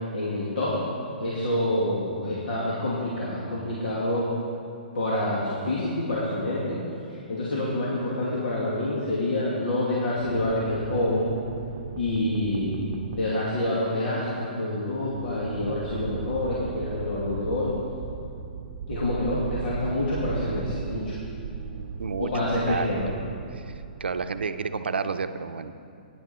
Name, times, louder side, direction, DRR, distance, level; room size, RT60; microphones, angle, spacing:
voice 1, 0.1-0.7 1.2-4.3 4.9-6.8 7.1-11.3 12.0-12.8 13.1-17.7 18.9-21.2 22.2-23.1, left 1 dB, 75° left, -6 dB, 2.5 m, -27 dB
sound 1, 10.2-13.8 14.8-24.5, right 7 dB, 45° right, 0.7 m, -37 dB
voice 2, 22.0-23.1 23.5-23.7 24.0-25.7, right 5 dB, 90° right, 9 dB, 0.6 m, -31 dB
12.0 x 10.0 x 4.4 m, 2.6 s
hypercardioid pair, 140°, 6 cm